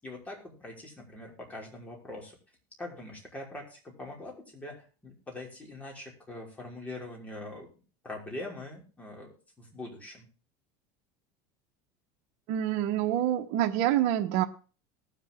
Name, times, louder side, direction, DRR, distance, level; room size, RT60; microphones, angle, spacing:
voice 1, 0.0-2.4 2.8-7.7 8.0-10.3, left 2 dB, 15° left, -1 dB, 5.5 m, -43 dB
voice 2, 12.5-14.4, right 12 dB, 60° right, 3 dB, 1.2 m, -26 dB
19.5 x 7.3 x 3.7 m, 0.36 s
supercardioid pair, 125°, 9 cm